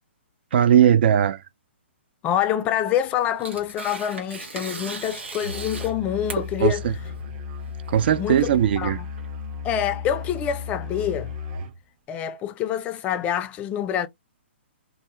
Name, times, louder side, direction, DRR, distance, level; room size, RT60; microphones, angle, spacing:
voice 1, 0.5-1.4 6.6-6.9 7.9-9.0, right 9 dB, 60° right, 0.4 m, -19 dB
voice 2, 2.2-6.8 8.2-8.5 8.8-8.9 9.6-11.3 12.1-14.1, left 10 dB, 20° left, 0.3 m, -26 dB
Tearing, 2.8-9.5, right 3 dB, 80° right, 1.3 m, -38 dB
Musical instrument, 5.4-11.8, left 5 dB, 40° right, 0.7 m, -34 dB
2.7 x 2.3 x 3.1 m
hypercardioid pair, 140°, 6 cm